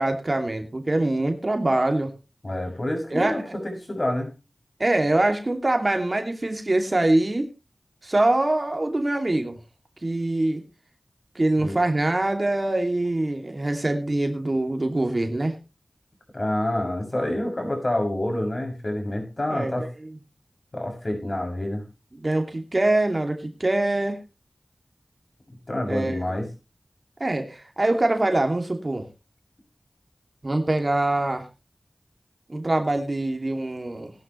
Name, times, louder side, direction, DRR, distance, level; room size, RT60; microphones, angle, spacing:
voice 1, 0.0-2.1 3.1-3.4 4.8-7.5 8.0-9.6 10.0-10.6 11.3-15.6 19.5-19.9 22.1-24.2 25.9-26.4 27.2-29.0 30.4-31.5 32.5-34.1, right 2 dB, 45° right, 5 dB, 2.5 m, -24 dB
voice 2, 2.4-4.3 11.6-11.8 16.3-19.9 20.7-21.8 25.5-26.5, left 1 dB, 45° left, 3 dB, 7.1 m, -27 dB
18.5 x 11.5 x 3.2 m, 0.29 s
wide cardioid pair, 45°, 0 cm